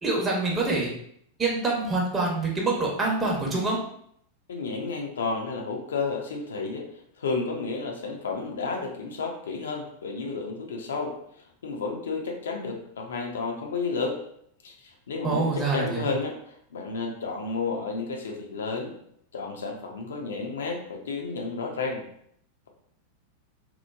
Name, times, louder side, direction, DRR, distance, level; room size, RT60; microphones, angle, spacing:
voice 1, 0.0-0.9 1.4-3.8 15.2-16.1, right 3 dB, 20° right, -2 dB, 0.7 m, -26 dB
voice 2, 4.5-6.9 7.2-11.1 11.6-14.2 14.6-18.9 19.3-22.0, left 4 dB, 65° left, 2 dB, 0.4 m, -31 dB
2.9 x 2.0 x 2.3 m, 0.68 s
figure-of-eight pair, 90°, 0 cm